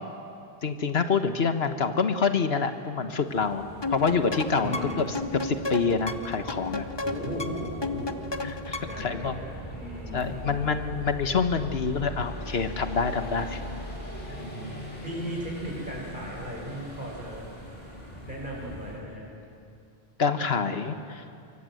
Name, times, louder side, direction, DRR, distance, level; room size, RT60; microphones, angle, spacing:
voice 1, 0.6-6.8 8.4-9.4 10.1-13.6 20.2-21.2, left 5 dB, 75° left, 8 dB, 1.5 m, -27 dB
sound 1, 3.2-19.0, equal, 40° left, 5.2 m, -41 dB
sound 2, 3.8-9.1, left 3 dB, 25° left, 1.0 m, -33 dB
voice 2, 4.6-5.1 7.0-10.6 14.3-17.4 18.3-19.3, equal, 50° right, -2 dB, 6.9 m, -37 dB
25.0 x 24.0 x 7.8 m, 2.5 s
omnidirectional pair, 1.0 m